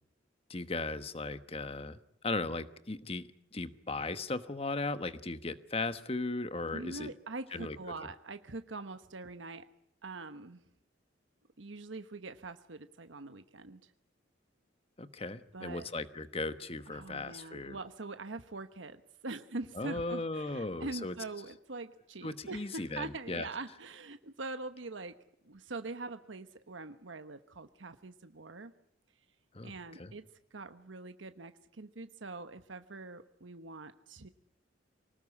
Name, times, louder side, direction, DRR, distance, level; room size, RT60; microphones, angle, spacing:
voice 1, 0.5-2.0 2.2-7.1 7.5-7.8 8.0-8.1 15.0-17.8 19.8-21.1 22.2-23.5 29.5-30.1, left 3 dB, 30° left, 12 dB, 1.2 m, -37 dB
voice 2, 6.7-9.7 10.0-10.6 11.6-13.9 15.5-15.9 16.9-25.1 25.4-28.7 29.6-30.2 30.5-34.3, right 3 dB, 85° right, 9 dB, 1.1 m, -43 dB
24.5 x 19.0 x 9.8 m, 0.72 s
head